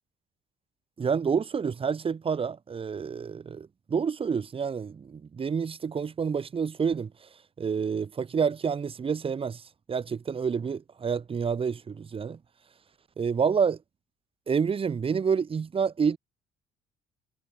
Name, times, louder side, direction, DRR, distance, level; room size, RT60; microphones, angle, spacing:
voice 1, 1.0-7.3 7.6-9.6 9.9-12.4 13.2-13.8 14.5-16.2, right 6 dB, 35° right, 2.8 m, -28 dB
cardioid pair, 110°, 17 cm